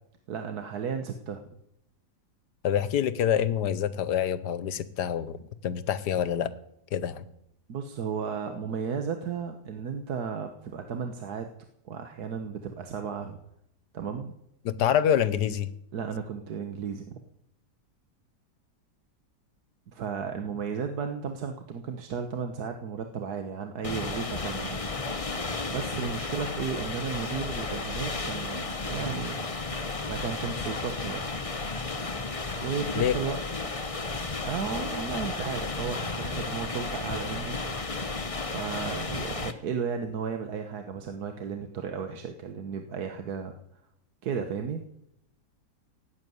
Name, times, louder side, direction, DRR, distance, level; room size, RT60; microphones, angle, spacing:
voice 1, 0.3-1.4 7.7-11.5 11.8-13.4 13.9-14.3 15.9-17.2 19.9-24.9 25.7-29.5 30.1-31.2 32.6-33.4 34.4-37.6 38.4-43.6 44.2-44.8, right 6 dB, 65° right, 6 dB, 1.6 m, -34 dB
voice 2, 2.6-6.5 6.9-7.2 14.6-15.7 32.9-33.1, left 9 dB, 80° left, 15 dB, 1.5 m, -26 dB
sound 1, 23.8-39.5, left 3 dB, 25° left, 1.0 m, -33 dB
17.5 x 8.4 x 9.4 m, 0.79 s
omnidirectional pair, 1.8 m